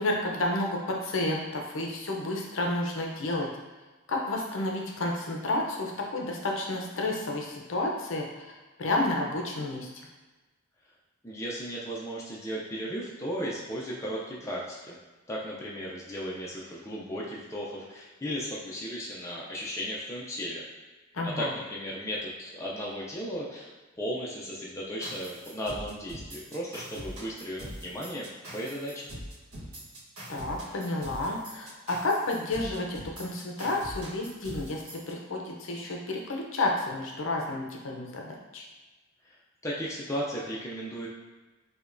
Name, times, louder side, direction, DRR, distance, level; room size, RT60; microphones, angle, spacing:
voice 1, 0.0-3.5 4.1-8.5 8.8-9.9 21.1-21.5 30.3-38.6, left 2 dB, 60° left, 0 dB, 0.6 m, -31 dB
voice 2, 11.2-15.0 15.3-20.6 21.2-23.7 24.0-28.3 28.5-29.0 39.3-39.4 39.6-41.1, equal, 15° left, -5 dB, 0.4 m, -35 dB
sound 1, 25.0-35.1, equal, 85° right, 1.2 m, -43 dB
4.9 x 2.2 x 2.5 m, 1.2 s
head